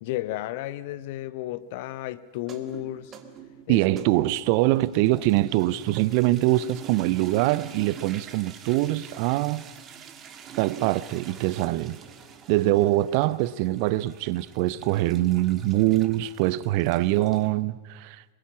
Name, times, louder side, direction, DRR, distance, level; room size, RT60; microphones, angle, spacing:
voice 1, 0.0-3.1 3.7-3.8, left 15 dB, 50° left, 0.9 m, -33 dB
sound 1, 2.4-17.5, right 8 dB, 30° right, 1.8 m, -46 dB
voice 2, 3.7-9.6 10.6-12.0 12.5-18.3, right 17 dB, 45° right, 0.6 m, -23 dB
24.5 x 22.0 x 6.2 m
figure-of-eight pair, 90°, 0 cm